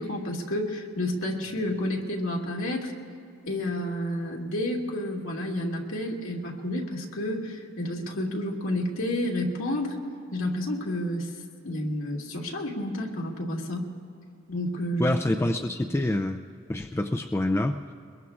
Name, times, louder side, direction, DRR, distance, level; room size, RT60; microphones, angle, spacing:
voice 1, 0.0-2.9 3.4-10.0 10.3-11.3 11.6-13.9 14.5-15.1, left 1 dB, 80° left, -2 dB, 2.0 m, -30 dB
voice 2, 15.0-16.4 16.7-17.8, left 1 dB, 10° left, 5 dB, 0.3 m, -26 dB
23.0 x 21.5 x 2.4 m, 2.4 s
head